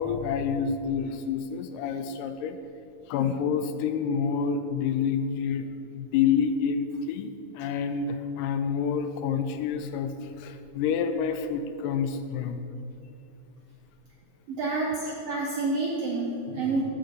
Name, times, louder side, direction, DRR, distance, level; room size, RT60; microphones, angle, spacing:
voice 1, 0.0-2.6 3.1-12.6, left 6 dB, 80° left, 9 dB, 2.1 m, -28 dB
voice 2, 14.5-16.8, right 3 dB, 75° right, -3 dB, 1.5 m, -28 dB
12.5 x 4.5 x 5.2 m, 2.8 s
omnidirectional pair, 3.9 m